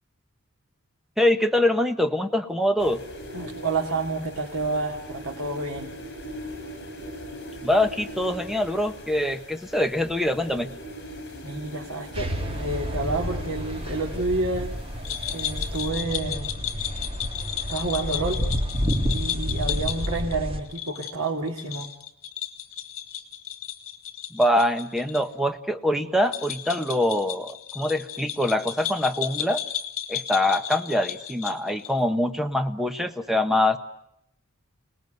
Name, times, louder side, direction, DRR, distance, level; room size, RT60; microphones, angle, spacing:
voice 1, 1.2-3.0 7.6-10.7 24.3-29.6 30.1-33.8, left 1 dB, ahead, 8 dB, 1.3 m, -24 dB
sound 1, 2.8-15.9, equal, 50° left, 6.7 m, -41 dB
voice 2, 3.3-5.9 11.4-12.3 12.6-14.7 15.3-16.5 17.7-18.4 19.1-21.9, right 3 dB, 90° right, -1 dB, 2.9 m, -29 dB
sound 2, 12.1-20.6, equal, 25° right, 2.6 m, -30 dB
sound 3, 15.0-25.2 25.5-25.6 26.2-32.0, left 11 dB, 65° left, 2.5 m, -34 dB
29.0 x 19.5 x 9.5 m, 0.79 s
head